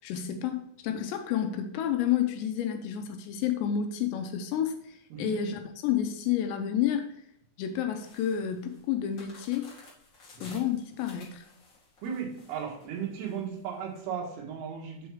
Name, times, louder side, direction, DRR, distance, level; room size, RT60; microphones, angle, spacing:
voice 1, 0.0-7.1 7.6-9.7 10.4-11.5, left 9 dB, 80° left, 6 dB, 2.6 m, -30 dB
sound 1, 8.0-14.0, left 2 dB, 55° left, 1.2 m, -54 dB
voice 2, 12.0-15.1, right 7 dB, 85° right, -1 dB, 4.0 m, -36 dB
7.9 x 4.6 x 4.7 m, 0.72 s
omnidirectional pair, 5.5 m